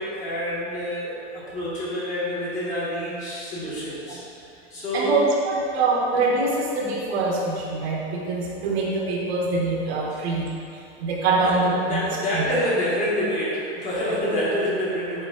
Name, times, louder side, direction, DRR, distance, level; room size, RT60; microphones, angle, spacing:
voice 1, 0.0-4.2 4.7-5.2 11.4-15.2, equal, 25° left, -8 dB, 1.3 m, -27 dB
voice 2, 4.9-10.4 11.0-12.0 12.3-12.4, right 3 dB, 80° right, -2 dB, 1.3 m, -24 dB
7.9 x 3.0 x 3.9 m, 2.6 s
supercardioid pair, 170°, 32 cm